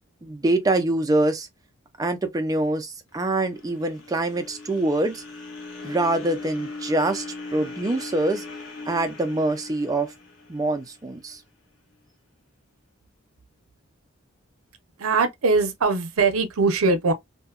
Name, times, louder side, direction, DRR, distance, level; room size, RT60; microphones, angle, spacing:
voice 1, 0.2-1.5 2.0-5.2 5.8-7.2 7.5-8.4 8.9-10.1 10.5-11.4, right 2 dB, 15° right, 0.3 m, -24 dB
sound 1, 3.1-11.4, left 3 dB, 65° left, 1.0 m, -39 dB
voice 2, 15.0-17.1, right 3 dB, 75° right, 0.6 m, -21 dB
2.7 x 2.2 x 2.3 m
head